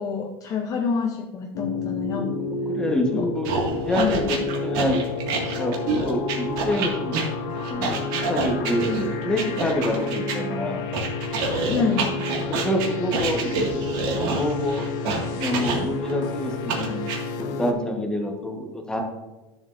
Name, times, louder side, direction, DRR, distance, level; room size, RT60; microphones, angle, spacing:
voice 1, 0.0-2.4 3.1-3.3 4.0-4.4 11.7-12.3, left 5 dB, 25° left, 3 dB, 0.6 m, -27 dB
sound 1, 1.5-17.7, left 3 dB, 60° left, 1.0 m, -30 dB
voice 2, 2.7-3.5 3.9-5.0 5.6-7.2 7.7-10.8 12.5-13.8 14.1-14.8 15.3-17.0 17.6-19.0, left 1 dB, 5° left, 2 dB, 1.1 m, -27 dB
sound 2, 3.5-10.4 10.9-16.1 16.7-17.2, right 4 dB, 60° right, 1.9 m, -28 dB
11.0 x 7.1 x 2.5 m, 1.1 s
supercardioid pair, 155°, 13 cm